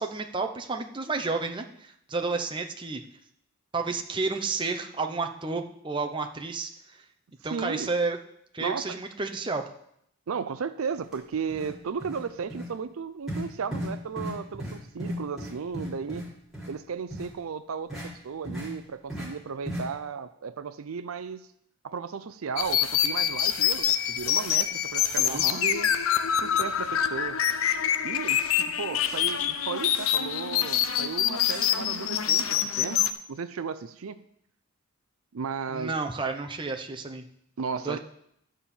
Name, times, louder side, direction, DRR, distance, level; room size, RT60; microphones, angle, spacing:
voice 1, 0.0-3.0 3.7-7.0 7.4-8.2 8.5-9.6 25.3-25.6 35.7-37.2 37.8-38.0, right 3 dB, 20° right, 4 dB, 0.7 m, -31 dB
voice 2, 7.5-7.9 8.6-8.8 10.3-16.3 16.7-21.5 21.8-25.9 26.4-27.4 28.0-33.0 33.3-34.2 35.3-35.9 37.6-38.0, right 6 dB, 75° right, 12 dB, 0.5 m, -35 dB
sound 1, 11.0-11.1 11.5-11.7 12.0-12.2 12.5-12.7 13.3-13.4 13.7-13.9 14.2-14.3 14.6-14.7 15.0-16.2 16.5-16.7 17.1-17.3 17.9-18.0 18.4-18.7 19.1-19.3 19.6-19.8, equal, ahead, 3.6 m, -34 dB
sound 2, 22.6-33.1, left 9 dB, 75° left, 0.6 m, -26 dB
12.0 x 4.3 x 7.1 m, 0.73 s
head